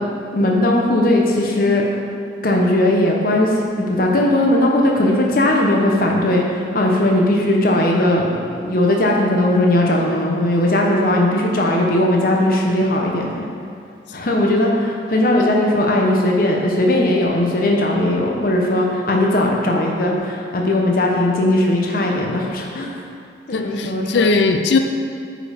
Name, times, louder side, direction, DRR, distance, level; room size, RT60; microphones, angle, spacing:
voice 1, 0.0-1.9 2.4-13.4 14.1-22.9 23.5-24.4, left 1 dB, 50° left, -1 dB, 0.9 m, -18 dB
voice 2, 23.5-24.8, left 4 dB, 70° left, 6 dB, 0.4 m, -18 dB
8.6 x 5.1 x 5.1 m, 2.4 s
head